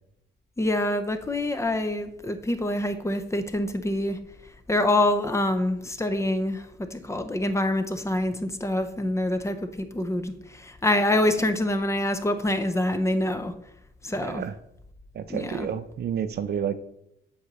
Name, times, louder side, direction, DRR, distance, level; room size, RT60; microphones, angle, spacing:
voice 1, 0.6-4.2 4.7-13.5 14.0-14.4 15.3-15.7, left 1 dB, 15° left, 7 dB, 0.7 m, -26 dB
voice 2, 14.2-14.5 15.1-16.7, right 8 dB, 55° right, 11 dB, 0.5 m, -30 dB
8.1 x 2.8 x 6.1 m, 0.79 s
cardioid pair, 90°, 20 cm